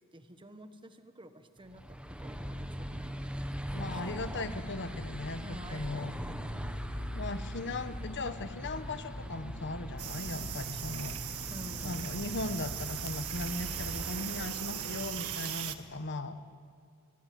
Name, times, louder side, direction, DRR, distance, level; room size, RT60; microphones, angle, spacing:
voice 1, 0.1-3.6 3.9-4.1 5.4-6.8 11.5-12.1, right 1 dB, 20° right, 8 dB, 1.4 m, -51 dB
sound 1, 1.7-15.2, equal, 5° right, 1.4 m, -41 dB
voice 2, 3.7-6.1 7.1-11.1 11.8-16.4, left 2 dB, 55° left, 9 dB, 1.4 m, -38 dB
Brass instrument, 3.8-13.1, left 3 dB, 75° left, 0.7 m, -49 dB
sound 2, 10.0-15.8, right 10 dB, 75° right, 1.6 m, -39 dB
26.0 x 23.0 x 9.4 m, 2.5 s
head